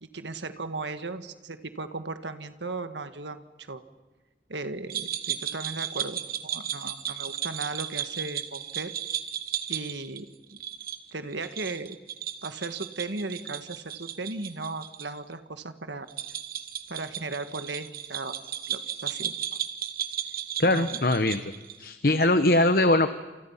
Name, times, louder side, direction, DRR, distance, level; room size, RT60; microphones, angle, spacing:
voice 1, 0.0-3.8 4.5-8.9 9.7-10.3 11.1-12.0 12.4-16.1 16.9-18.4 18.7-19.3 20.6-21.0, right 3 dB, 85° right, 9 dB, 1.7 m, -36 dB
sound 1, 4.9-15.1 15.3-15.4 16.1-21.8, right 10 dB, 50° right, 1.4 m, -35 dB
voice 2, 20.6-21.5 21.8-23.1, left 1 dB, 55° left, 9 dB, 1.1 m, -22 dB
30.0 x 28.0 x 5.8 m, 1.2 s
head